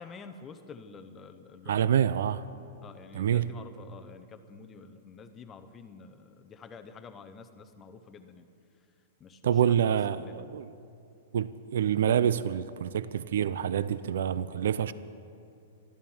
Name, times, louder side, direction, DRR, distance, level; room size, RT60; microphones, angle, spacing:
voice 1, 0.0-1.9 2.8-8.5 9.2-10.5, left 5 dB, 15° left, 0.6 m, -48 dB
voice 2, 1.7-2.4 3.1-3.5 9.4-10.7 11.3-14.9, right 9 dB, 70° right, 0.5 m, -27 dB
13.5 x 13.0 x 7.1 m
supercardioid pair, 170°, 0 cm